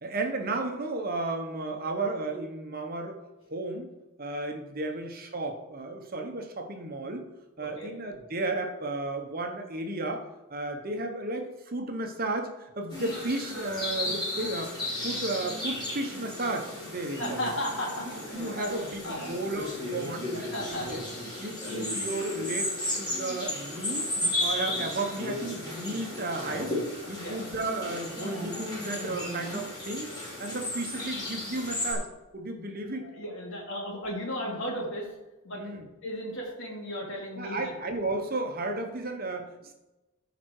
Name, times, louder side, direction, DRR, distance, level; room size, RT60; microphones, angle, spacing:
voice 1, 0.0-3.2 3.5-3.9 4.2-7.3 7.6-17.4 18.3-21.0 21.4-24.0 24.4-26.7 27.1-30.1 30.4-32.1 32.3-33.1 35.5-35.9 37.4-39.7, right 2 dB, 40° right, 4 dB, 1.2 m, -33 dB
voice 2, 7.6-7.9 17.1-19.3 20.3-21.1 27.1-27.4 33.0-35.1 35.4-35.6 36.0-37.7, equal, 55° left, -3 dB, 3.2 m, -35 dB
sound 1, 12.9-31.9, left 1 dB, 20° left, 3.7 m, -34 dB
14.5 x 5.2 x 4.8 m, 1.0 s
head